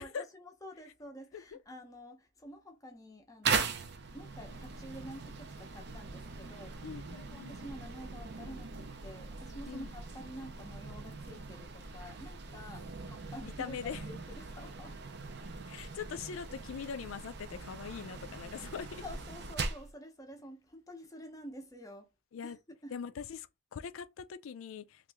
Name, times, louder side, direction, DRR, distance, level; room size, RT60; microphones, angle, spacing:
voice 1, 0.0-3.7 4.1-6.8 7.1-13.8 14.1-15.0 19.0-22.1 22.4-22.6 22.8-22.9, equal, 15° left, 0.6 m, -49 dB
sound 1, 3.4-19.9, right 4 dB, 55° right, 0.5 m, -40 dB
voice 2, 6.8-7.6 9.7-9.9 13.4-14.0 15.7-19.0 22.3-22.6 22.9-25.1, left 7 dB, 80° left, 0.4 m, -42 dB
3.0 x 2.5 x 3.4 m
head